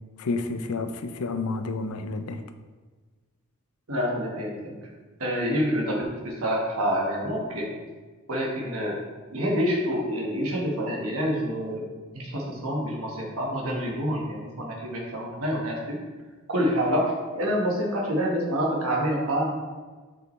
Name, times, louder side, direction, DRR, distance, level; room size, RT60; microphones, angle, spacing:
voice 1, 0.2-2.4, left 3 dB, 80° left, 8 dB, 0.5 m, -30 dB
voice 2, 3.9-4.7 5.2-7.7 8.3-9.0 9.3-11.8 12.1-16.0 16.5-17.1 17.3-19.5, equal, 85° right, -2 dB, 1.4 m, -27 dB
6.3 x 5.3 x 3.2 m, 1.4 s
head